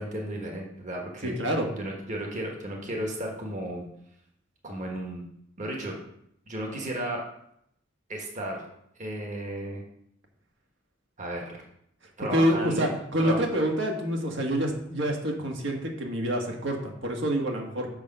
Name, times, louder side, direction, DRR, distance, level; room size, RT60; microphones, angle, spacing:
voice 1, 0.0-1.4 1.7-3.9 4.6-5.2 5.6-6.0 6.5-7.2 8.1-8.6 9.0-9.8 11.2-11.5 12.2-12.9 13.2-13.4, right 1 dB, 40° right, 0 dB, 1.5 m, -34 dB
voice 2, 1.2-1.7 12.3-17.9, equal, 70° right, 1 dB, 1.5 m, -27 dB
6.8 x 6.4 x 5.4 m, 0.74 s
head